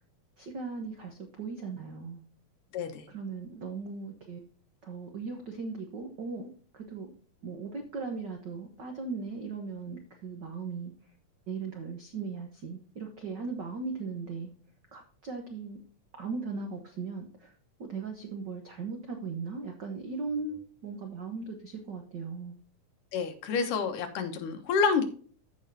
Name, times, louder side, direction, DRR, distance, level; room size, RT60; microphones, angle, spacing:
voice 1, 0.4-2.2 3.1-4.4 4.8-7.1 7.4-10.9 11.5-14.5 14.9-15.8 16.2-17.5 17.8-22.5, right 4 dB, 80° right, 4 dB, 0.9 m, -38 dB
voice 2, 2.7-3.1 23.1-25.0, left 5 dB, 85° left, 6 dB, 2.8 m, -28 dB
14.5 x 5.3 x 2.7 m, 0.43 s
omnidirectional pair, 3.6 m